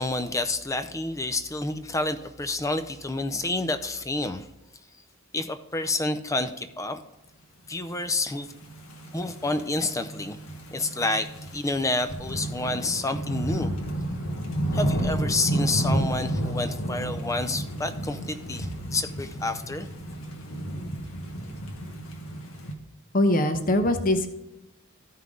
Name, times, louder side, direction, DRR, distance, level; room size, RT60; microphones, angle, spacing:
voice 1, 0.0-4.5 5.3-7.0 7.7-8.5 9.1-10.4 10.7-13.7 14.7-19.9, left 2 dB, 15° left, 10 dB, 0.5 m, -29 dB
sound 1, 8.4-22.7, right 1 dB, 80° left, 1.5 m, -31 dB
voice 2, 23.1-24.3, left 1 dB, 40° left, 8 dB, 0.8 m, -22 dB
13.5 x 5.7 x 3.7 m, 0.94 s
head